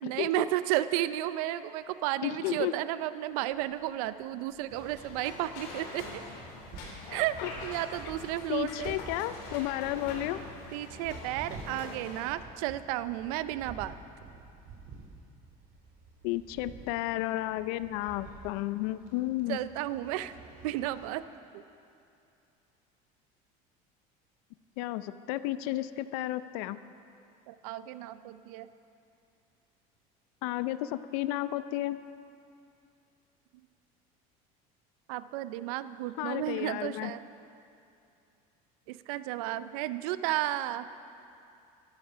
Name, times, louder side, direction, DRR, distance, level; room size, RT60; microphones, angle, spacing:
voice 1, 0.0-6.2 7.1-9.0 10.7-14.0 19.5-20.3 20.6-21.2 21.5-21.6 27.5-28.7 35.1-37.2 38.9-40.9, right 14 dB, 85° right, 14 dB, 0.5 m, -33 dB
voice 2, 2.2-2.7 7.4-7.5 8.5-10.4 16.2-19.6 24.8-26.8 30.4-32.0 36.2-37.1, left 15 dB, 80° left, 14 dB, 0.5 m, -32 dB
sound 1, 3.3-21.1, right 4 dB, 55° right, 2.2 m, -50 dB
sound 2, 4.7-12.3, left 3 dB, 65° left, 3.1 m, -44 dB
13.0 x 12.0 x 5.7 m, 2.6 s
supercardioid pair, 120°, 18 cm